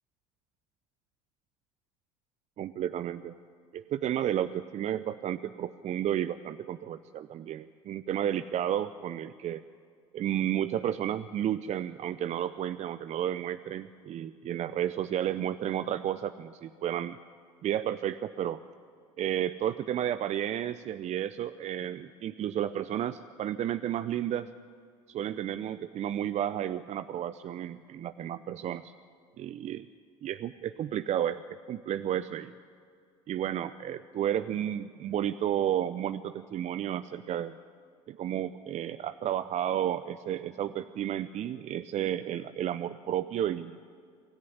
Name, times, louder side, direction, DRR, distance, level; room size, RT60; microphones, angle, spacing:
voice 1, 2.6-3.3 3.7-9.6 10.1-17.2 17.6-18.6 19.2-24.5 25.1-28.9 29.4-29.9 30.2-32.5 33.3-37.5 38.1-43.8, right 10 dB, 45° right, 13 dB, 0.7 m, -32 dB
25.0 x 14.0 x 10.0 m, 2.2 s
hypercardioid pair, 70°, 16 cm